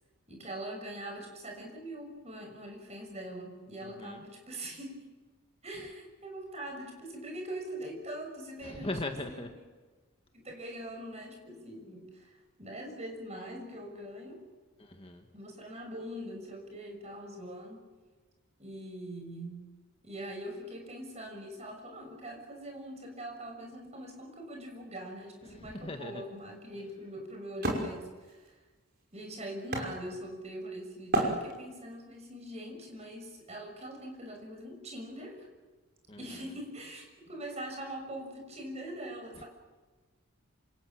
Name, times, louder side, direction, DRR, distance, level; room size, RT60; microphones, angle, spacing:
voice 1, 0.3-5.0 5.6-9.4 10.3-14.5 15.3-17.9 18.6-19.7 20.0-28.6 29.1-35.5 36.2-39.5, right 1 dB, 30° right, 2 dB, 6.6 m, -42 dB
voice 2, 3.8-4.2 8.6-9.5 14.8-15.2 25.5-26.2 36.1-36.4 39.4-39.5, left 2 dB, 25° left, 4 dB, 1.7 m, -39 dB
Wood, 25.9-30.6 31.1-32.0, right 1 dB, 45° right, 5.6 m, -34 dB
27.5 x 27.0 x 7.6 m, 1.3 s
head